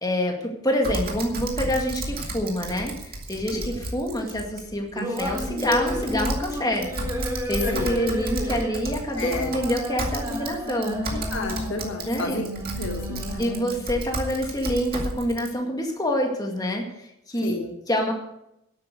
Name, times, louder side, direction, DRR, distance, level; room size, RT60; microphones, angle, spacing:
voice 1, 0.0-6.9 7.5-11.2 12.1-12.4 13.4-16.8 17.3-17.6 17.9-18.1, equal, 15° left, 1 dB, 2.1 m, -26 dB
Typing, 0.8-15.5, right 1 dB, 45° right, 2.2 m, -33 dB
voice 2, 3.5-3.9 7.7-7.9 9.1-9.6 11.1-12.4 12.8-13.5 17.4-17.8, left 3 dB, 55° left, 3 dB, 1.4 m, -32 dB
sound 1, 4.9-13.9, equal, 15° right, 2.5 m, -32 dB
11.5 x 8.8 x 7.7 m, 0.82 s
head